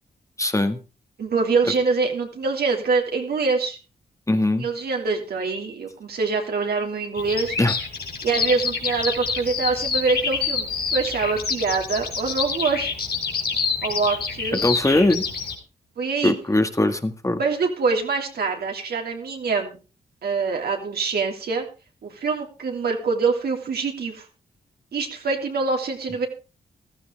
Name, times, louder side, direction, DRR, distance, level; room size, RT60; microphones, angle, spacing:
voice 1, 0.4-0.8 4.3-4.7 7.6-7.7 14.5-15.2 16.2-17.4, left 2 dB, 20° left, 8 dB, 1.7 m, -21 dB
voice 2, 1.2-3.8 4.4-7.5 8.2-12.9 13.8-14.6 16.0-16.3 17.4-19.8 20.2-21.6 22.0-24.2 24.9-26.3, right 4 dB, 70° right, 2 dB, 3.1 m, -24 dB
Bird vocalization bird call bird song, 7.1-15.5, left 5 dB, 70° left, 3.3 m, -27 dB
15.0 x 13.5 x 3.5 m, 0.32 s
supercardioid pair, 50°, 17 cm